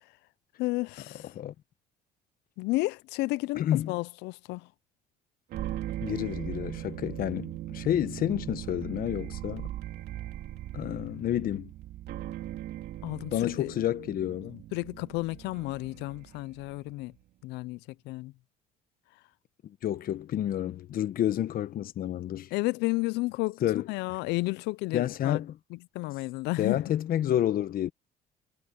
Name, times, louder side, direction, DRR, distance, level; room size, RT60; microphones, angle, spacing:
voice 1, 0.6-1.3 2.6-4.7 13.0-13.7 14.7-17.1 17.4-17.8 18.1-18.3 22.5-23.6 23.9-25.4 25.9-26.8, left 22 dB, 90° left, 0.4 m, -32 dB
voice 2, 3.5-3.9 6.0-9.7 10.7-11.7 13.3-14.6 19.6-22.5 23.6-23.9 24.9-25.6 26.6-27.9, left 11 dB, 60° left, 1.1 m, -29 dB
sound 1, 5.5-16.9, right 13 dB, 75° right, 3.0 m, -39 dB
cardioid pair, 110°, 17 cm